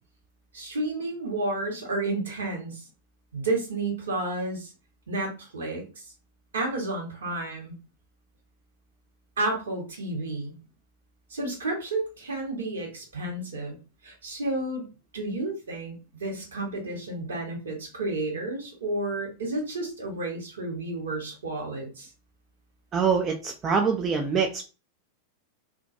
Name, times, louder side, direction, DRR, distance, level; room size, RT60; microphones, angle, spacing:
voice 1, 0.5-2.8 3.3-4.7 5.1-6.0 6.5-7.7 9.4-10.5 11.3-13.8 14.0-14.9 15.1-22.1, right 2 dB, 70° right, 0 dB, 0.9 m, -31 dB
voice 2, 22.9-24.6, right 6 dB, 25° right, 2 dB, 0.3 m, -24 dB
2.2 x 2.2 x 2.6 m, 0.32 s
figure-of-eight pair, 90°, 0 cm